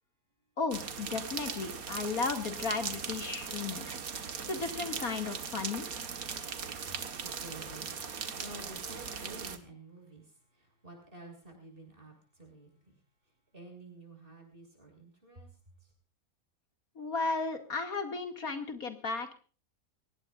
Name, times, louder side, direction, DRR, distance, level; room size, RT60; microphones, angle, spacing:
voice 1, 0.6-5.9 17.0-19.3, left 4 dB, 85° left, 6 dB, 2.8 m, -35 dB
sound 1, 0.7-9.6, right 6 dB, 80° right, 1.9 m, -39 dB
voice 2, 6.7-13.0 13.5-15.5 15.8-15.9, right 2 dB, 40° right, 3 dB, 7.5 m, -51 dB
24.0 x 19.0 x 2.5 m, 0.37 s
omnidirectional pair, 1.5 m